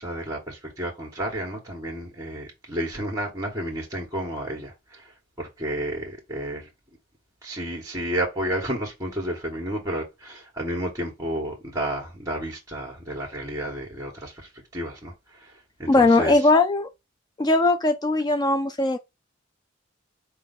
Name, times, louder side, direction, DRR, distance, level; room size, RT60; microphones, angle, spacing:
voice 1, 0.0-5.0 5.4-6.7 7.4-14.3 14.7-15.1 15.8-16.3, right 1 dB, 15° right, 1.3 m, -31 dB
voice 2, 15.9-16.9 17.4-19.0, left 2 dB, 20° left, 0.4 m, -19 dB
4.5 x 2.7 x 4.0 m
head